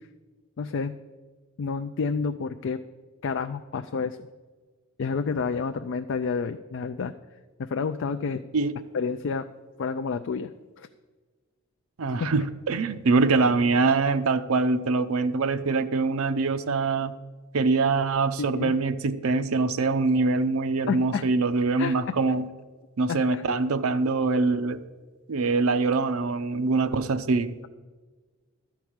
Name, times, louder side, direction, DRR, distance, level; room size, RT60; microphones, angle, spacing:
voice 1, 0.6-1.0 1.6-2.8 3.2-4.2 5.0-7.1 7.6-8.4 8.9-9.5 9.8-10.5 10.8-10.9 12.2-12.3 18.4-18.7 20.9-21.2 21.8-21.9 23.1-23.4, left 5 dB, 55° left, 8 dB, 0.4 m, -29 dB
voice 2, 12.0-17.1 17.5-22.5 23.0-24.8 25.3-27.5, right 3 dB, 65° right, 10 dB, 0.6 m, -24 dB
12.5 x 4.7 x 8.7 m, 1.4 s
head